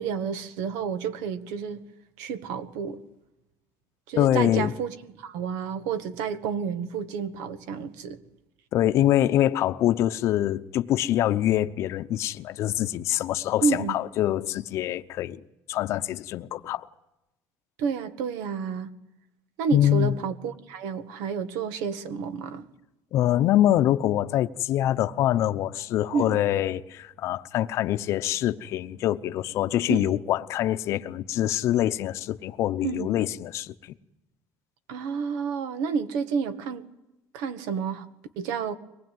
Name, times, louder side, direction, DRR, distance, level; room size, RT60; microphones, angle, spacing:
voice 1, 0.0-1.8 2.2-3.0 4.1-8.2 13.6-14.0 17.8-18.9 19.6-22.6 26.1-26.4 29.9-30.1 32.8-33.1 34.9-36.8 37.3-38.1 38.4-38.8, right 6 dB, 85° right, 1.9 m, -30 dB
voice 2, 4.2-4.7 8.7-15.4 15.7-16.9 19.7-20.1 23.1-33.7, left 12 dB, 55° left, 0.8 m, -24 dB
24.0 x 19.5 x 9.4 m
cardioid pair, 155°, 6 cm